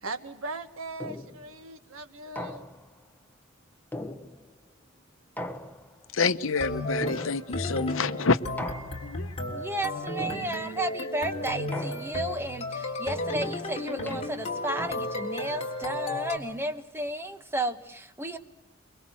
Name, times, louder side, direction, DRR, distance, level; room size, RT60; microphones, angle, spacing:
voice 1, 0.0-2.6, right 2 dB, 85° right, 1.7 m, -39 dB
sound 1, 1.0-1.5 2.4-3.0 3.9-4.7 5.4-6.2 7.0-7.7 8.6-9.3 10.2-10.8 11.7-12.4 13.3-15.4, left 1 dB, 10° left, 1.2 m, -40 dB
voice 2, 6.1-8.4 9.0-9.3, left 4 dB, 70° left, 0.9 m, -27 dB
sound 2, 6.5-16.4, left 1 dB, 30° left, 3.7 m, -34 dB
voice 3, 9.5-18.4, right 1 dB, 10° right, 1.3 m, -33 dB
25.0 x 23.5 x 7.7 m
head